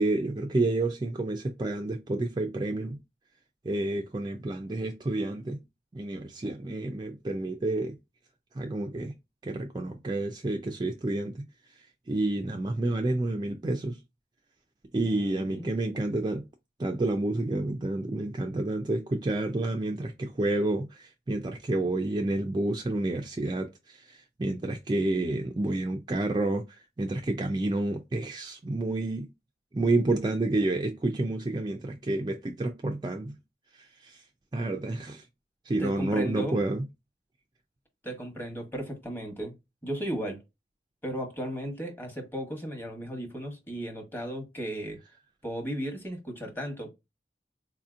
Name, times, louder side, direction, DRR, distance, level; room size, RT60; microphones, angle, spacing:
voice 1, 0.0-3.0 3.6-5.6 5.9-8.0 8.6-9.1 9.4-11.5 12.1-14.0 14.9-16.5 16.8-29.3 29.7-33.4 33.8-34.2 34.5-35.2 35.7-36.9, right 2 dB, 25° right, 0.3 m, -29 dB
voice 2, 15.1-15.7 35.8-36.6 38.0-39.5 39.8-40.4 41.0-45.0 45.4-46.9, equal, 10° left, 1.0 m, -35 dB
4.1 x 2.7 x 2.4 m
head